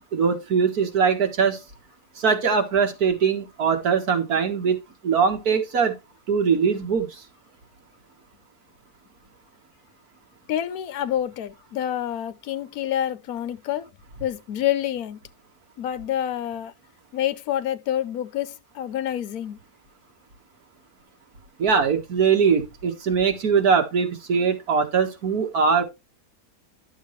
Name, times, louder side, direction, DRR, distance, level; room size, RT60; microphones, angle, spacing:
voice 1, 0.1-1.6 2.2-4.8 5.0-6.0 6.3-7.1 21.6-25.8, right 6 dB, 85° right, 2.1 m, -21 dB
voice 2, 10.5-13.9 14.2-15.2 15.8-16.7 17.1-19.6, left 11 dB, 80° left, 1.2 m, -27 dB
11.0 x 7.2 x 3.2 m
omnidirectional pair, 1.5 m